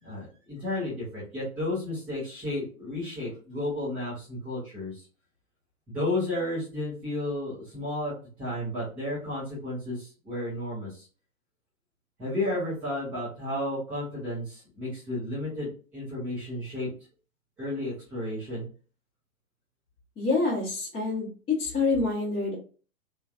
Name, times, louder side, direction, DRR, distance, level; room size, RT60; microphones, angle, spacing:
voice 1, 0.0-5.0 5.9-8.1 8.4-11.1 12.2-16.9 17.6-18.7, left 1 dB, 5° right, -10 dB, 0.3 m, -32 dB
voice 2, 20.2-21.3 21.6-22.6, left 3 dB, 15° left, -7 dB, 0.8 m, -27 dB
3.2 x 2.2 x 2.3 m, 0.37 s
figure-of-eight pair, 115°, 43 cm